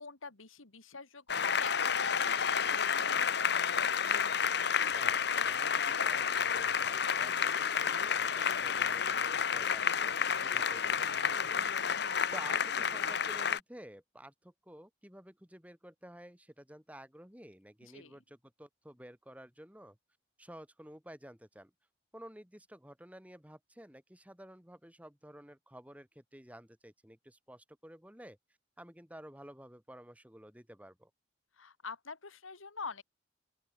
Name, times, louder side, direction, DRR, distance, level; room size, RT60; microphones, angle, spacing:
voice 1, 0.0-1.7 2.1-3.4 17.9-18.2 31.6-33.0, left 4 dB, 90° left, 2.3 m, -46 dB
Applause, 1.3-13.6, left 7 dB, 55° left, 1.0 m, -30 dB
voice 2, 4.9-11.8 12.3-20.0 20.4-21.7 22.1-28.4 28.8-31.1, equal, 5° right, 3.7 m, -52 dB
open air
head